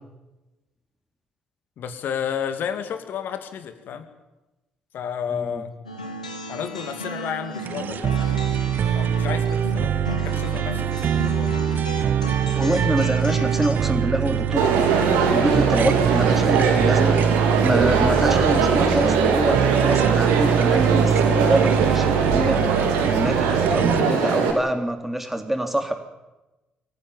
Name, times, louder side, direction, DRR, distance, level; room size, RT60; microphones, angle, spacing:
voice 1, 1.8-4.0 4.9-5.7 6.5-8.2 8.9-11.5, left 8 dB, 55° left, 9 dB, 2.5 m, -31 dB
voice 2, 5.3-5.7 12.5-15.0 15.3-17.2 17.6-22.6 23.1-25.9, right 1 dB, 5° right, 6 dB, 3.5 m, -25 dB
sound 1, 5.9-13.7, left 1 dB, 90° left, 1.9 m, -35 dB
sound 2, 7.6-24.0, right 8 dB, 50° right, 1.0 m, -23 dB
Crowd, 14.6-24.5, right 5 dB, 75° right, 3.4 m, -21 dB
23.0 x 14.5 x 10.0 m, 1.1 s
figure-of-eight pair, 45°, 4 cm